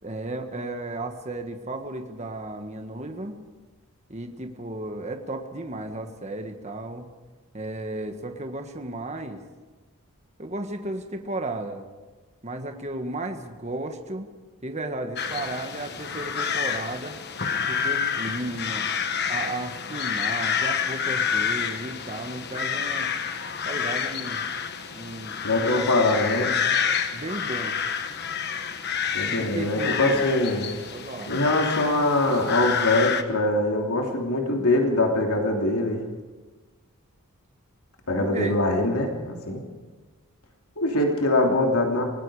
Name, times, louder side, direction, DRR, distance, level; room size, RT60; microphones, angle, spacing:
voice 1, 0.0-3.4 4.1-7.1 7.5-9.4 10.4-11.8 12.4-14.3 14.6-17.1 17.7-18.9 19.2-23.1 23.6-24.4 24.9-25.9 27.1-27.8 29.3-30.3 30.9-31.3 38.2-38.6, right 2 dB, 30° right, 5 dB, 1.6 m, -34 dB
sound 1, 15.2-33.2, left 7 dB, 50° left, 1.3 m, -28 dB
voice 2, 25.4-26.6 29.1-30.7 31.3-36.0 38.1-39.6 40.8-42.0, left 2 dB, 80° left, 1 dB, 3.0 m, -23 dB
27.0 x 19.5 x 5.0 m, 1.3 s
head